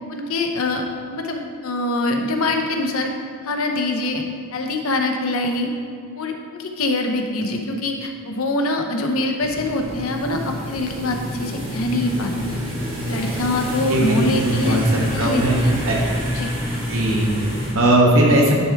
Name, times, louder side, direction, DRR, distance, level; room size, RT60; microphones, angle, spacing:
voice 1, 0.1-0.8 1.1-3.1 3.4-4.2 4.5-5.7 6.2-12.6 13.1-14.8 15.1-15.8 16.3-16.5, left 2 dB, 75° left, 3 dB, 0.8 m, -24 dB
sound 1, 9.4-17.7, equal, 25° right, 1.5 m, -28 dB
voice 2, 13.9-14.8 15.2-15.5 15.8-16.0 16.9-18.5, right 1 dB, 70° right, -2 dB, 1.4 m, -18 dB
10.0 x 4.6 x 3.4 m, 2.2 s
head